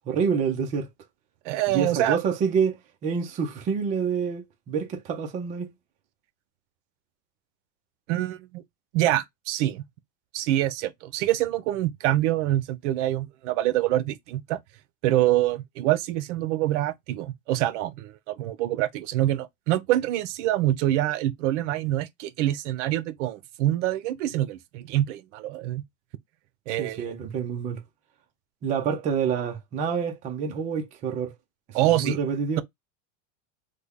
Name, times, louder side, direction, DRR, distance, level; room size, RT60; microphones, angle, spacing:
voice 1, 0.1-0.9 1.7-5.7 26.8-27.8 28.6-31.3 31.7-32.6, right 6 dB, 20° right, 0.5 m, -27 dB
voice 2, 1.4-2.2 8.1-8.6 8.9-9.8 10.3-14.6 15.0-25.8 26.7-27.1 31.7-32.2, right 14 dB, 70° right, 0.7 m, -25 dB
3.3 x 2.2 x 3.5 m
supercardioid pair, 165°, 38 cm